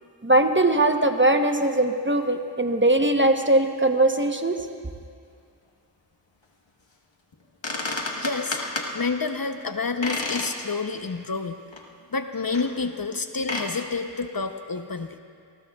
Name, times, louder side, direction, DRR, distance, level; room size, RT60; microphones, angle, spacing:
voice 1, 0.2-4.6, right 2 dB, 25° right, 5 dB, 1.0 m, -20 dB
sound 1, 7.3-7.4 7.6-8.9 10.0-10.6 11.0-11.1 11.7-11.8 12.5-12.7 13.4-13.7, left 2 dB, 85° left, 1.4 m, -30 dB
voice 2, 8.2-8.6 8.9-11.6 12.1-15.1, left 4 dB, 50° left, 7 dB, 0.8 m, -29 dB
26.5 x 19.5 x 2.4 m, 2.4 s
wide cardioid pair, 45°, 44 cm